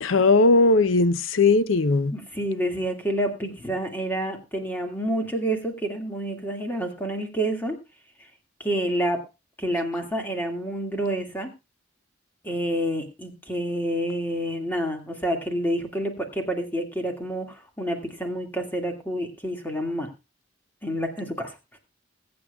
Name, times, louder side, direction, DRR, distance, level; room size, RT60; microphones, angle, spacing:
voice 1, 0.0-2.1, left 3 dB, 80° left, 0.7 m, -18 dB
voice 2, 2.1-7.8 8.6-9.2 9.6-11.5 12.4-20.1 20.8-21.6, right 1 dB, 10° left, 2.0 m, -28 dB
21.0 x 8.7 x 2.3 m
head